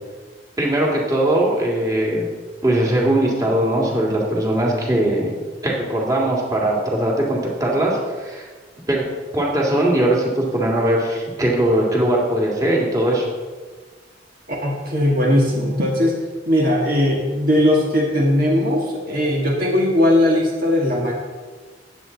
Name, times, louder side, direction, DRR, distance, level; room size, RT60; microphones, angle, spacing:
voice 1, 0.6-2.3 2.6-5.3 5.6-8.5 8.9-9.0 9.3-13.3, right 1 dB, 20° right, -3 dB, 2.4 m, -20 dB
voice 2, 14.5-16.2 16.5-21.1, left 1 dB, 50° right, -1 dB, 1.7 m, -18 dB
14.5 x 9.9 x 4.1 m, 1.4 s
head